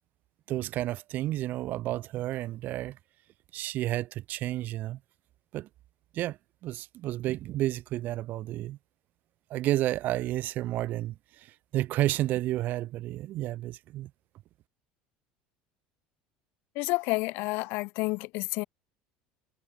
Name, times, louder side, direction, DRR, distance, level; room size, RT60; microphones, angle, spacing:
voice 1, 0.5-3.0 3.5-5.0 5.5-5.7 6.1-6.4 6.6-8.8 9.5-11.1 11.7-14.1, right 15 dB, 55° right, 0.7 m, -31 dB
voice 2, 16.7-18.6, left 24 dB, 70° left, 1.7 m, -30 dB
supercardioid pair, 105°, 4 cm